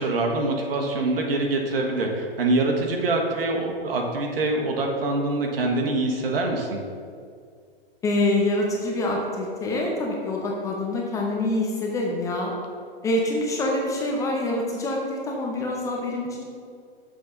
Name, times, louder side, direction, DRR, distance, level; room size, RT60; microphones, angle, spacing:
voice 1, 0.0-6.8, right 2 dB, 70° right, 1 dB, 1.4 m, -24 dB
voice 2, 8.0-12.5 13.0-16.4, left 1 dB, 10° left, -1 dB, 0.5 m, -26 dB
6.7 x 3.9 x 5.9 m, 2.2 s
hypercardioid pair, 140°, 30 cm